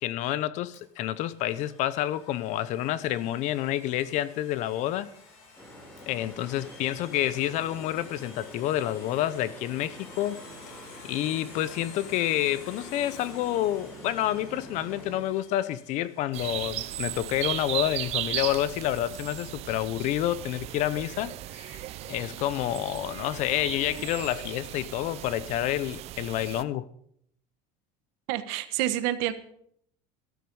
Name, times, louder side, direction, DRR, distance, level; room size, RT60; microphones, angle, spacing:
voice 1, 0.0-5.1 6.1-10.4 11.0-21.8 22.1-26.9, left 13 dB, 50° left, 0.8 m, -29 dB
Domestic sounds home sounds, 0.7-17.5, left 4 dB, 85° left, 7.1 m, -51 dB
sound 1, 5.6-15.2, right 1 dB, 10° left, 3.1 m, -47 dB
sound 2, 16.3-26.6, right 14 dB, 40° right, 0.7 m, -36 dB
voice 2, 28.3-29.3, right 14 dB, 65° right, 1.4 m, -28 dB
13.5 x 13.0 x 5.5 m
cardioid pair, 155°, 16 cm